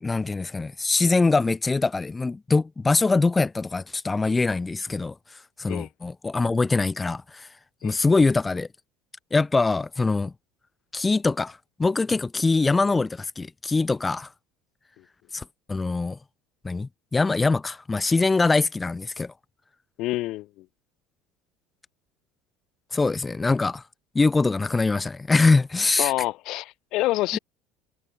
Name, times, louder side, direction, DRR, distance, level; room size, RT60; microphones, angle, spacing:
voice 1, 0.0-5.1 5.6-7.5 7.8-8.7 9.3-10.3 10.9-14.3 15.3-16.2 16.6-19.3 22.9-23.8 24.1-26.1 27.3-27.4, left 3 dB, 15° left, 0.8 m, -23 dB
voice 2, 20.0-20.6 26.0-27.4, left 18 dB, 65° left, 1.2 m, -27 dB
supercardioid pair, 95°, 0 cm